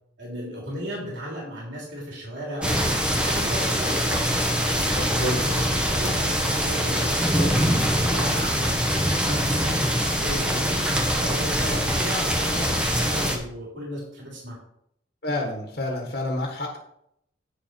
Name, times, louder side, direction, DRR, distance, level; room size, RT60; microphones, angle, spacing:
voice 1, 0.2-4.2 4.6-14.6, equal, 80° right, -3 dB, 3.3 m, -35 dB
sound 1, 2.6-13.4, equal, 5° right, 1.2 m, -23 dB
voice 2, 5.0-5.7 15.2-16.8, left 1 dB, 60° left, 0 dB, 1.6 m, -29 dB
9.3 x 6.7 x 4.4 m, 0.75 s
head